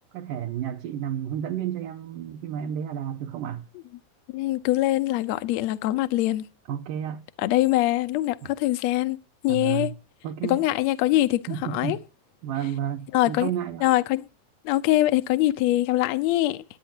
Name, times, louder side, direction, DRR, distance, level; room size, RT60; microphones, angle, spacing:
voice 1, 0.1-3.7 6.7-7.2 8.4-8.5 9.5-9.9 10.2-10.7 11.5-12.0 12.4-13.9, right 10 dB, 75° right, 2.4 m, -31 dB
voice 2, 4.3-6.4 7.4-9.2 9.4-9.9 10.5-11.4 11.7-12.0 13.1-13.5 13.8-14.3 14.6-16.6, left 16 dB, 75° left, 1.6 m, -23 dB
21.0 x 9.0 x 2.9 m
omnidirectional pair, 4.0 m